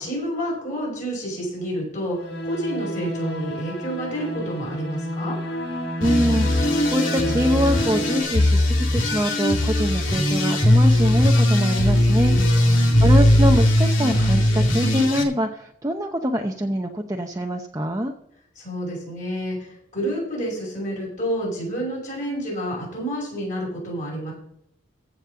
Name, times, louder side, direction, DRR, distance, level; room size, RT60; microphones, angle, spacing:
voice 1, 0.0-5.4 12.3-13.1 18.5-24.3, equal, 40° left, -4 dB, 6.0 m, -29 dB
sound 1, 2.1-8.2, equal, 65° left, 3.2 m, -30 dB
sound 2, 6.0-15.2, left 1 dB, 85° left, 2.2 m, -19 dB
voice 2, 6.0-12.4 13.0-18.1, equal, 15° right, 2 dB, 0.7 m, -24 dB
15.0 x 5.3 x 7.0 m, 0.72 s
head